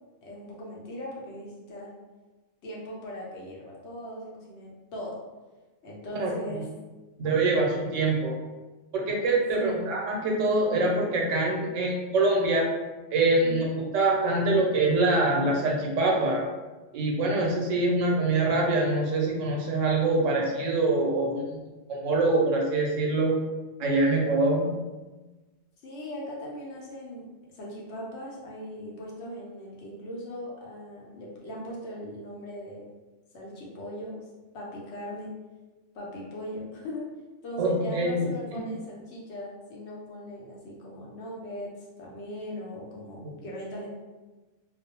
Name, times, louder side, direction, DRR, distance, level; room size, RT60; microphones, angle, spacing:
voice 1, 0.2-1.9 2.6-5.2 5.8-6.7 9.5-9.9 13.4-13.7 25.8-32.8 33.3-34.2 34.5-35.4 35.9-37.1 37.4-43.9, equal, 65° left, -3 dB, 0.9 m, -39 dB
voice 2, 6.2-6.6 7.2-8.4 8.9-12.7 13.1-16.5 16.9-21.6 21.9-23.4 23.8-24.7 37.6-38.6 43.2-43.3, right 2 dB, 85° right, -1 dB, 1.0 m, -24 dB
2.4 x 2.0 x 2.8 m, 1.2 s
omnidirectional pair, 1.3 m